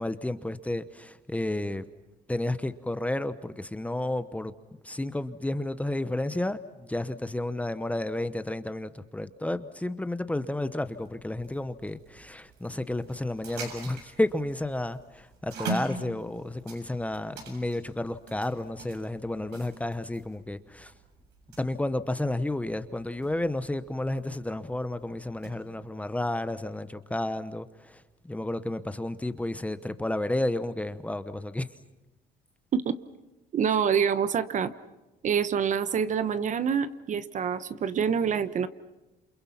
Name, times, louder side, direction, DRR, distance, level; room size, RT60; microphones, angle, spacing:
voice 1, 0.0-1.8 2.3-4.5 4.8-20.9 21.6-31.7, left 1 dB, 10° left, 11 dB, 1.0 m, -31 dB
sound 1, 10.8-25.7, right 3 dB, 80° right, 7.5 m, -43 dB
voice 2, 33.5-34.7 35.2-38.7, right 7 dB, 45° right, 12 dB, 1.2 m, -26 dB
28.5 x 28.5 x 5.9 m, 1.1 s
cardioid pair, 110°, 17 cm